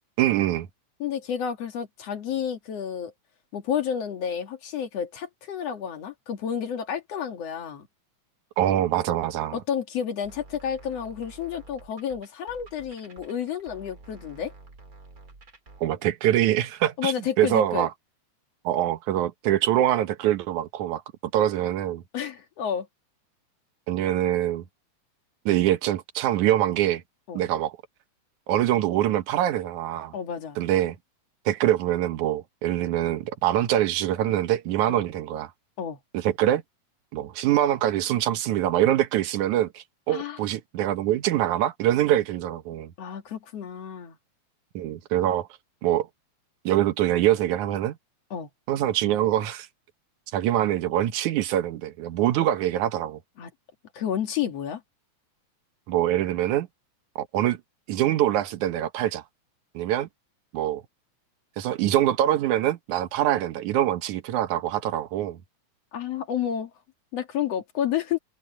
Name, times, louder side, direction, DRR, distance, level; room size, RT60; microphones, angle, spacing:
voice 1, 0.2-0.7 8.6-9.6 15.8-17.9 18.6-21.0 21.3-22.0 23.9-24.6 25.5-27.0 27.3-27.8 28.5-30.1 30.6-31.0 31.5-35.5 36.1-36.6 37.1-42.9 44.8-45.5 45.8-46.1 46.7-47.9 48.7-49.7 50.3-53.2 55.9-56.7 57.2-57.6 57.9-59.2 59.7-60.1 60.5-60.8 61.6-65.4, right 12 dB, 85° right, 2.5 m, -24 dB
voice 2, 1.0-3.1 3.5-7.9 9.5-14.5 17.0-17.9 22.1-22.9 27.3-27.5 30.1-30.6 34.9-35.0 35.8-36.0 40.1-40.4 43.0-44.2 48.3-48.5 53.4-53.5 53.9-54.8 65.9-66.7 67.1-68.2, left 8 dB, 60° left, 2.8 m, -30 dB
sound 1, 10.2-15.8, right 3 dB, 30° right, 2.8 m, -49 dB
omnidirectional pair, 3.3 m